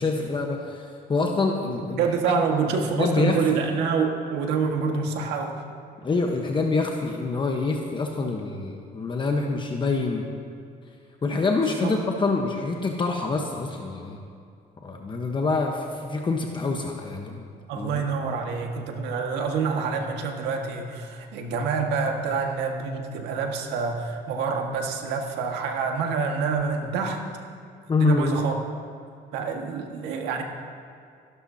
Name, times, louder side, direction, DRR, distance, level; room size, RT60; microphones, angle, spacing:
voice 1, 0.0-2.0 2.7-3.4 6.0-10.3 11.2-14.2 14.8-17.5 17.8-18.1 27.9-28.4, left 3 dB, 30° left, 2 dB, 1.1 m, -26 dB
voice 2, 2.0-5.6 11.8-11.9 17.7-27.2 28.0-28.5 29.3-30.4, right 5 dB, 85° right, 2 dB, 1.8 m, -27 dB
26.5 x 12.5 x 2.8 m, 2.4 s
cardioid pair, 110°, 17 cm